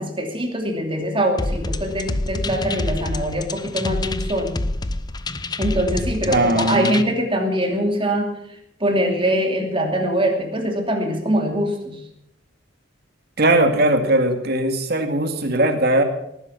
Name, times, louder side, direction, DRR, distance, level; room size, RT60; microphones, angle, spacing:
voice 1, 0.0-4.6 5.6-8.3 8.8-12.0, equal, 25° right, 3 dB, 2.7 m, -23 dB
sound 1, 1.4-7.0, left 2 dB, 20° left, 0.6 m, -27 dB
voice 2, 6.2-7.0 13.4-16.0, right 1 dB, 55° right, 6 dB, 2.2 m, -19 dB
18.5 x 10.0 x 5.9 m, 0.80 s
head